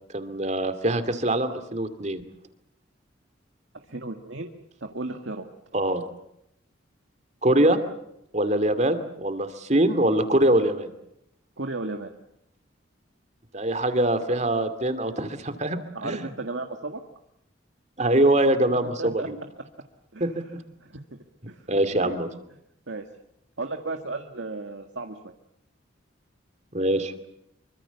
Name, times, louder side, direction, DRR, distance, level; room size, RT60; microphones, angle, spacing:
voice 1, 0.1-2.2 5.7-6.0 7.4-7.8 8.3-10.9 13.5-16.2 18.0-19.4 20.2-20.5 21.7-22.3 26.7-27.1, right 1 dB, 35° right, 10 dB, 2.5 m, -23 dB
voice 2, 3.9-4.5 4.8-5.5 11.6-12.1 15.9-17.0 19.0-19.3 19.6-19.7 20.1-20.3 20.8-21.0 21.5-21.7 21.9-22.2 22.9-23.0 23.6-25.3, right 2 dB, 70° right, 5 dB, 1.9 m, -34 dB
26.0 x 25.0 x 7.1 m, 0.79 s
head